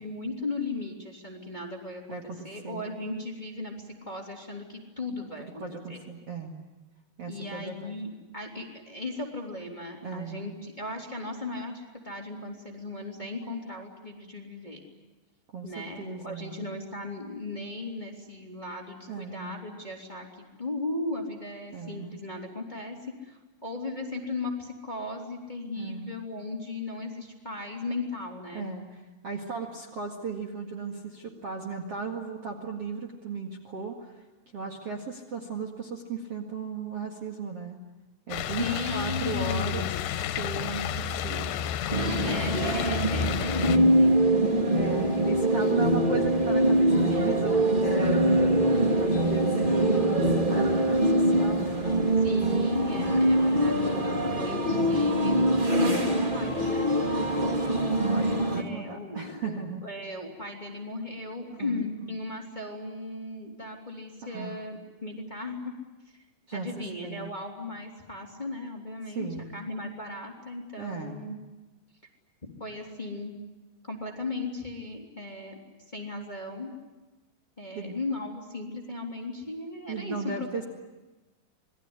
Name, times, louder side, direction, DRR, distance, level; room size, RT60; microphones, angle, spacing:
voice 1, 0.0-6.0 7.3-14.8 15.6-23.0 23.2-28.7 38.6-39.9 42.1-44.9 52.2-55.4 55.7-56.9 58.5-65.7 66.1-66.2 66.5-71.4 72.6-73.4 73.8-75.6 75.9-76.7 77.6-80.5, left 2 dB, 10° left, 0 dB, 3.0 m, -36 dB
voice 2, 2.1-2.9 5.4-6.6 7.2-7.9 10.0-10.5 15.5-16.7 19.1-19.5 21.7-22.2 25.8-26.1 28.5-34.2 34.5-37.8 38.3-39.8 40.4-41.5 42.4-42.8 43.2-43.5 44.7-52.1 54.8-55.1 57.3-59.8 61.5-61.8 64.2-64.6 66.5-66.7 67.0-67.3 69.1-69.6 70.8-71.3 77.7-78.0 79.9-80.6, right 4 dB, 45° right, 1 dB, 2.5 m, -36 dB
sound 1, 38.3-43.8, left 9 dB, 90° left, 3.2 m, -31 dB
sound 2, 41.9-58.6, right 1 dB, 20° right, 1.3 m, -24 dB
27.5 x 20.5 x 9.7 m, 1.1 s
omnidirectional pair, 4.7 m